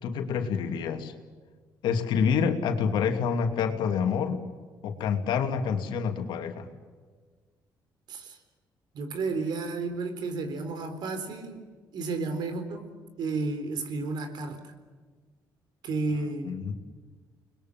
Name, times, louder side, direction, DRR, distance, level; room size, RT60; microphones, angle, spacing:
voice 1, 0.0-1.1 1.8-4.4 4.8-6.7 16.4-16.7, left 6 dB, 85° left, 5 dB, 2.7 m, -27 dB
voice 2, 8.9-11.6 11.9-12.9 13.2-14.7 15.8-16.6, right 3 dB, 70° right, 9 dB, 4.0 m, -32 dB
30.0 x 21.0 x 7.4 m, 1.5 s
cardioid pair, 105°, 8 cm